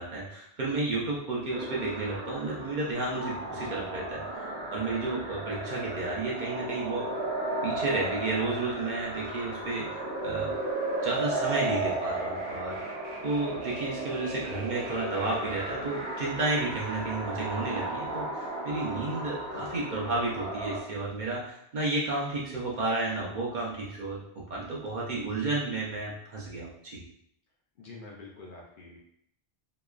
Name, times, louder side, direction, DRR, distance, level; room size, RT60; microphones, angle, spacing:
voice 1, 0.0-7.0 7.6-10.5 11.0-12.8 13.2-24.2 24.5-27.0, right 3 dB, 55° right, -4 dB, 0.6 m, -32 dB
sound 1, 1.5-20.8, right 2 dB, 90° right, 1.0 m, -35 dB
voice 2, 27.8-29.0, left 3 dB, 60° left, -2 dB, 0.6 m, -46 dB
2.9 x 2.2 x 2.3 m, 0.71 s
omnidirectional pair, 1.1 m